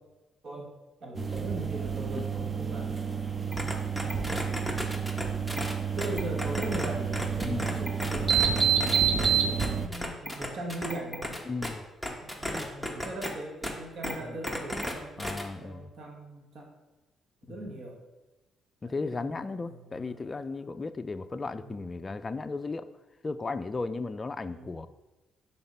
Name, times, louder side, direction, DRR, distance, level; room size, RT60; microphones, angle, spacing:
voice 1, 0.4-2.9 4.0-5.1 5.9-11.4 12.2-16.7 17.4-18.0 18.8-20.7 21.5-21.7 24.5-24.7, right 1 dB, 60° right, 0 dB, 1.3 m, -40 dB
sound 1, 1.2-9.9, right 7 dB, 30° right, 0.6 m, -29 dB
sound 2, 3.5-6.9 7.1-9.3 9.6-11.7 12.0-13.3 13.6-13.7 14.0-14.1 14.4-14.9 15.2-15.4, equal, 5° right, 1.0 m, -34 dB
voice 2, 11.5-11.8 12.5-12.7 14.2-14.4 15.2-15.9 17.5-17.7 18.8-22.9 23.2-24.9, left 3 dB, 30° left, 10 dB, 0.3 m, -35 dB
5.8 x 4.0 x 5.4 m, 1.1 s
cardioid pair, 90°, 0 cm